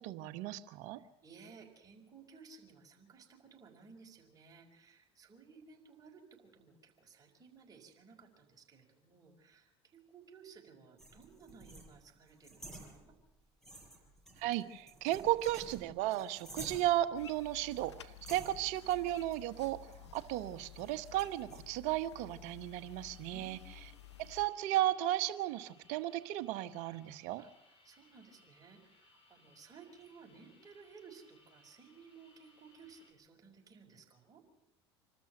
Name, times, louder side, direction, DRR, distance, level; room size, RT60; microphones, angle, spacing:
voice 1, 0.0-1.0 14.4-19.8 20.1-23.6 24.2-27.4, right 14 dB, 60° right, 12 dB, 1.2 m, -35 dB
voice 2, 0.9-13.1 23.3-24.2 27.4-27.5 27.8-34.4, right 5 dB, 25° right, 0 dB, 5.2 m, -58 dB
sound 1, 11.0-13.3 13.6-17.1 17.7-17.9 18.3-21.6, right 1 dB, 5° left, 6.9 m, -52 dB
sound 2, 17.1-24.5, left 12 dB, 85° left, 0.9 m, -54 dB
sound 3, 22.7-33.1, left 2 dB, 40° left, 6.5 m, -67 dB
26.0 x 13.0 x 7.6 m, 0.90 s
hypercardioid pair, 75°, 14 cm